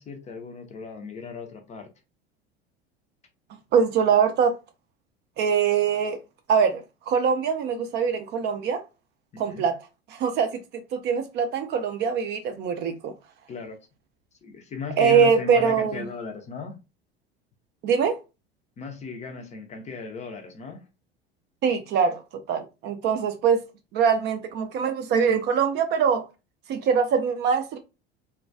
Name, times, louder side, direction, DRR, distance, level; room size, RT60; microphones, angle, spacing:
voice 1, 0.0-1.9 9.3-9.7 13.5-13.8 14.4-16.8 18.8-20.8, left 5 dB, 25° left, 0.5 m, -36 dB
voice 2, 3.7-4.5 5.4-6.2 6.5-8.8 9.4-9.8 10.1-13.1 15.0-16.0 17.8-18.2 21.6-22.2 22.5-23.6 23.9-26.2 26.7-27.8, right 6 dB, 35° right, 0.4 m, -23 dB
2.2 x 2.2 x 2.5 m
figure-of-eight pair, 75°, 29 cm